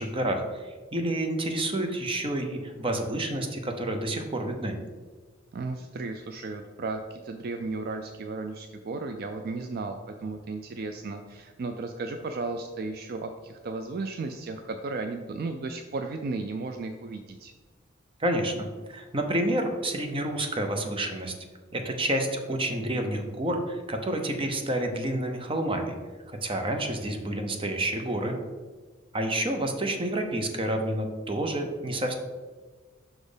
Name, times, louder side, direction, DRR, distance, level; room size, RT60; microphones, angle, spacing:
voice 1, 0.0-4.8 18.2-21.3 21.7-25.9 26.4-28.4 29.1-32.1, right 1 dB, 25° right, 4 dB, 0.7 m, -29 dB
voice 2, 5.5-17.5, right 3 dB, 50° right, 6 dB, 0.4 m, -34 dB
6.0 x 4.3 x 5.0 m, 1.4 s
head